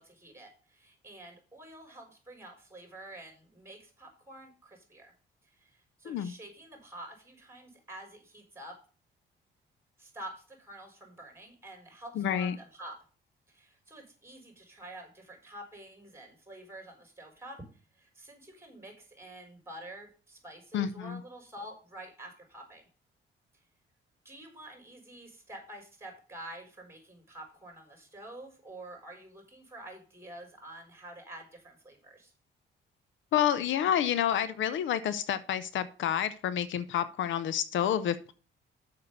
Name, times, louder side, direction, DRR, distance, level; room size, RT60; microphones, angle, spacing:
voice 1, 0.0-5.1 5.5-8.8 10.0-13.0 13.5-17.6 17.9-22.8 24.2-32.3, right 1 dB, 15° right, 2 dB, 4.3 m, -48 dB
voice 2, 12.2-12.6 20.7-21.2 33.3-38.3, left 10 dB, 75° left, 14 dB, 0.7 m, -29 dB
6.8 x 5.7 x 6.6 m, 0.37 s
cardioid pair, 90°, 20 cm